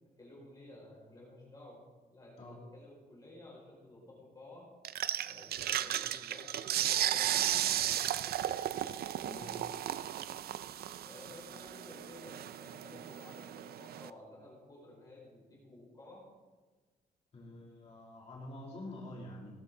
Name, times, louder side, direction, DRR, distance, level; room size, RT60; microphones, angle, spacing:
voice 1, 0.2-4.7 5.2-8.4 9.4-9.7 11.0-16.2, left 1 dB, 20° left, -5 dB, 5.2 m, -54 dB
sound 1, 4.8-14.1, right 11 dB, 75° right, 0.4 m, -35 dB
voice 2, 17.3-19.5, left 1 dB, 40° left, -4 dB, 2.7 m, -47 dB
18.0 x 12.5 x 3.8 m, 1.3 s
wide cardioid pair, 170°, 16 cm